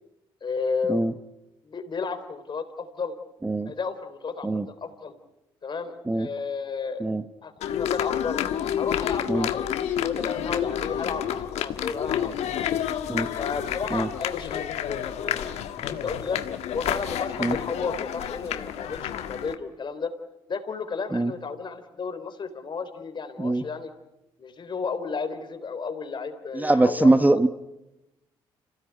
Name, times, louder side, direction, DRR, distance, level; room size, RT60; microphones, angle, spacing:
voice 1, 0.4-1.0 1.6-3.2 3.7-5.1 5.6-7.0 7.4-8.4 8.8-12.8 13.4-16.4 16.7-20.1 20.5-23.9 24.4-27.4, left 5 dB, 45° left, 8 dB, 3.7 m, -33 dB
sound 1, 7.6-19.5, left 10 dB, 70° left, 1.5 m, -29 dB
voice 2, 26.5-27.5, right 2 dB, 15° right, 11 dB, 1.1 m, -22 dB
27.0 x 16.5 x 9.5 m, 0.94 s
supercardioid pair, 65°, 11 cm